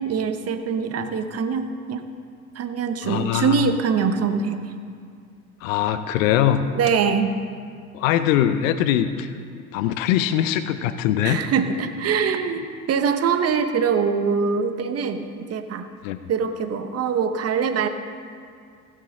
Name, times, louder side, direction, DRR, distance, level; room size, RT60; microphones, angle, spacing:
voice 1, 0.0-2.1 2.5-4.7 6.7-7.4 11.2-15.9 16.3-17.9, right 6 dB, 35° right, 8 dB, 0.9 m, -23 dB
voice 2, 3.0-3.7 5.6-6.7 7.9-9.3 9.7-11.4 16.0-16.2, left 11 dB, 65° left, 12 dB, 0.7 m, -22 dB
16.0 x 9.3 x 3.7 m, 2.2 s
figure-of-eight pair, 70°, 44 cm